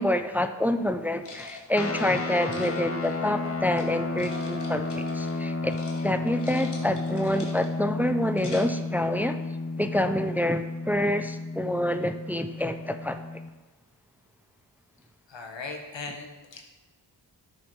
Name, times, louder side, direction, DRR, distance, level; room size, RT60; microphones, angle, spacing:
voice 1, 0.0-5.8 6.0-9.4 9.8-13.2, left 1 dB, 5° right, 9 dB, 0.6 m, -27 dB
sound 1, 1.2-3.8 4.2-5.4 5.7-6.0 6.3-7.8 8.2-8.9, left 2 dB, 65° left, 2.3 m, -45 dB
sound 2, 1.7-13.5, left 3 dB, 30° left, 0.9 m, -32 dB
voice 2, 15.3-16.6, left 3 dB, 85° left, 3 dB, 1.8 m, -38 dB
12.0 x 7.2 x 4.7 m, 1.2 s
cardioid pair, 65°, 43 cm